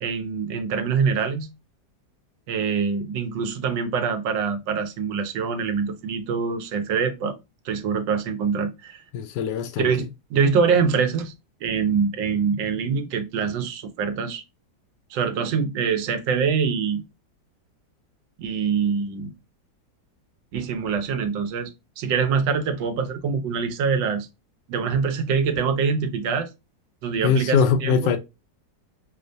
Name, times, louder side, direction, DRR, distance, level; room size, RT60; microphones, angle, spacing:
voice 1, 0.0-1.5 2.5-7.4 7.6-9.0 9.8-10.0 10.3-11.3 11.6-14.4 15.1-17.0 18.4-19.3 20.5-21.7 22.0-24.3 24.7-26.5 27.0-28.1, right 6 dB, 85° right, 1.4 m, -24 dB
voice 2, 9.1-9.9 27.2-28.2, left 6 dB, 75° left, 1.2 m, -21 dB
4.8 x 2.1 x 2.5 m
omnidirectional pair, 2.0 m